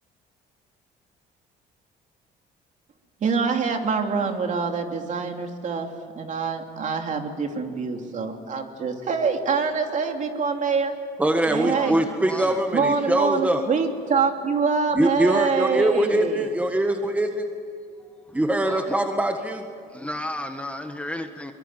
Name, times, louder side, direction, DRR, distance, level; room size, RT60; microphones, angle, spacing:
voice 1, 3.2-10.9 11.5-12.0 12.7-16.5, right 5 dB, 45° right, 4 dB, 3.0 m, -25 dB
voice 2, 11.2-13.6 14.9-17.5 18.3-19.7, right 1 dB, 10° right, 5 dB, 1.6 m, -23 dB
voice 3, 11.7-12.6 18.6-19.0 19.9-21.5, left 1 dB, 5° left, 6 dB, 1.6 m, -33 dB
24.0 x 23.0 x 9.1 m, 2.5 s
cardioid pair, 110°, 17 cm